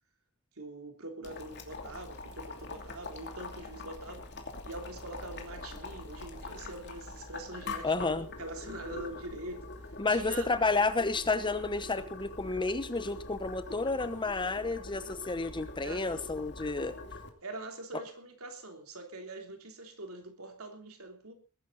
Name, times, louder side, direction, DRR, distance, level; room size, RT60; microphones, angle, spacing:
voice 1, 0.6-4.3 4.6-9.7 10.1-10.5 15.8-16.1 17.4-21.3, right 2 dB, 70° right, 3.3 m, -44 dB
Boiling, 1.2-17.3, left 3 dB, 50° left, 2.7 m, -44 dB
voice 2, 7.8-8.3 10.0-16.9, left 3 dB, 20° left, 1.0 m, -31 dB
20.5 x 11.5 x 4.0 m
head